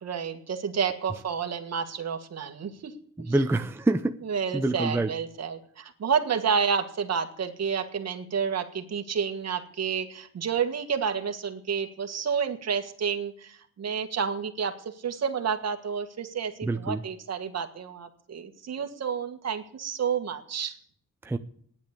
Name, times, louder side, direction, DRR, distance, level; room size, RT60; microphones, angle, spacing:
voice 1, 0.0-2.9 3.2-3.5 4.2-20.8, right 6 dB, 55° right, 6 dB, 1.8 m, -30 dB
voice 2, 3.3-4.1 4.5-5.1 16.6-17.0 21.3-21.4, right 2 dB, 10° right, 7 dB, 0.6 m, -25 dB
14.5 x 10.5 x 8.2 m, 0.63 s
wide cardioid pair, 130°, 31 cm